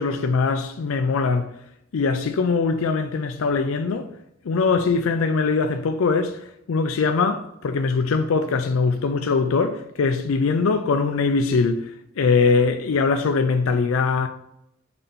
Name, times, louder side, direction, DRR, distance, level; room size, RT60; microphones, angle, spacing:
voice 1, 0.0-1.5 1.9-4.1 4.4-14.3, left 4 dB, 80° left, 0.4 m, -22 dB
4.3 x 4.1 x 5.3 m
head